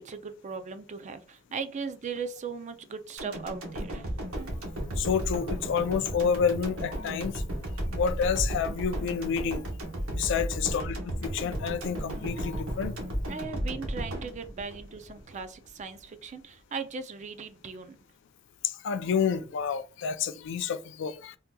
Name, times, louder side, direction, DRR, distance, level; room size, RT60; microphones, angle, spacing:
voice 1, 0.0-4.1 13.3-18.0, right 5 dB, 35° right, 0.4 m, -38 dB
sound 1, 3.2-15.4 15.8-15.9, right 1 dB, 80° right, 1.0 m, -34 dB
voice 2, 5.0-7.4 7.9-9.6 10.1-12.9 13.3-13.4 18.6-21.4, left 6 dB, 65° left, 0.3 m, -29 dB
3.6 x 2.8 x 2.2 m
head